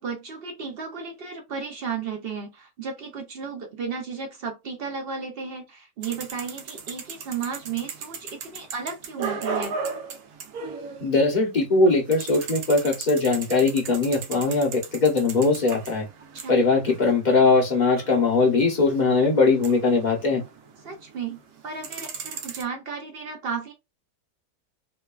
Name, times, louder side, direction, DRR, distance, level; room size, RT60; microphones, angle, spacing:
voice 1, 0.0-9.8 16.3-16.5 20.8-23.7, right 6 dB, 60° right, 0.6 m, -34 dB
sound 1, 6.0-11.5 11.7-21.1 21.5-22.6, right 5 dB, 85° right, 1.1 m, -37 dB
voice 2, 11.0-16.1 16.5-20.4, left 3 dB, 40° left, 0.7 m, -20 dB
3.0 x 2.2 x 2.3 m
omnidirectional pair, 1.6 m